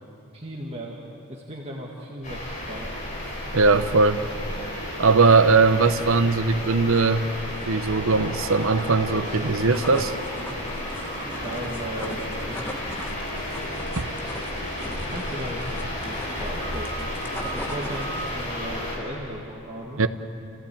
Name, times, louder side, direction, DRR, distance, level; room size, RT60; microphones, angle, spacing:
voice 1, 0.3-1.0 1.3-2.9 11.4-13.0 14.2-14.4 14.9-17.1 17.5-20.0, right 1 dB, 25° right, -2 dB, 1.8 m, -37 dB
sound 1, 2.2-19.0, left 1 dB, 35° left, 5.5 m, -32 dB
voice 2, 3.5-4.2 5.0-7.3 7.7-10.1 14.0-14.1 20.0-20.1, right 4 dB, 65° right, 11 dB, 0.8 m, -20 dB
sound 2, 9.4-18.5, left 1 dB, 10° left, 1.3 m, -39 dB
28.0 x 16.5 x 8.6 m, 2.9 s
head